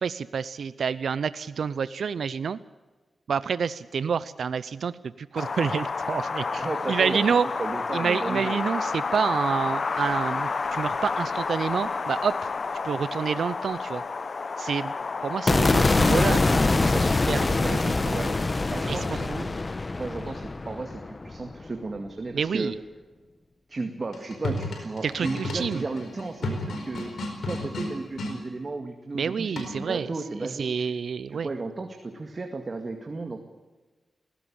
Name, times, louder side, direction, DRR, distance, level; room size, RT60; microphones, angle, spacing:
voice 1, 0.0-2.6 3.3-7.5 7.9-12.3 12.8-14.0 14.6-14.9 15.2-18.1 18.9-19.3 22.3-22.7 25.0-25.8 29.1-30.1 30.6-31.5, right 6 dB, 85° right, 16 dB, 0.6 m, -28 dB
Wind, 5.4-19.4, left 4 dB, 55° left, 0.9 m, -31 dB
voice 2, 6.6-7.2 7.6-8.7 18.1-18.4 18.7-19.5 20.0-22.7 23.7-30.9 31.3-33.4, right 3 dB, 45° right, 4 dB, 2.2 m, -34 dB
sound 1, 15.5-21.7, left 3 dB, 35° left, 1.1 m, -24 dB
sound 2, 24.0-28.4 29.6-30.0, left 2 dB, 90° left, 4.6 m, -33 dB
19.5 x 16.5 x 8.8 m, 1.3 s
cardioid pair, 70°, 0 cm